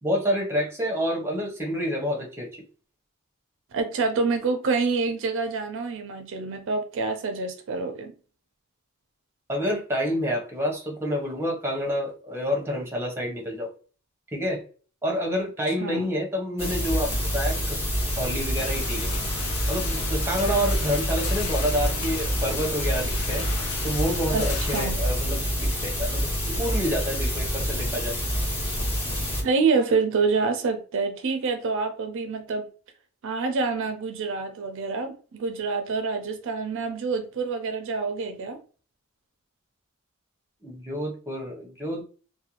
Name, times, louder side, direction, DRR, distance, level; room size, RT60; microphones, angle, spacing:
voice 1, 0.0-2.6 9.5-13.7 14.3-14.6 15.0-17.8 18.2-19.1 19.7-28.2 40.6-42.0, equal, 10° right, 0.6 m, -28 dB
voice 2, 3.7-8.1 15.8-16.1 24.3-25.0 29.4-32.7 33.2-38.6, right 4 dB, 60° right, 0.4 m, -27 dB
sound 1, 16.6-29.4, equal, 30° left, 1.0 m, -27 dB
sound 2, 18.5-24.9, left 6 dB, 85° left, 0.4 m, -37 dB
2.4 x 2.1 x 2.9 m
head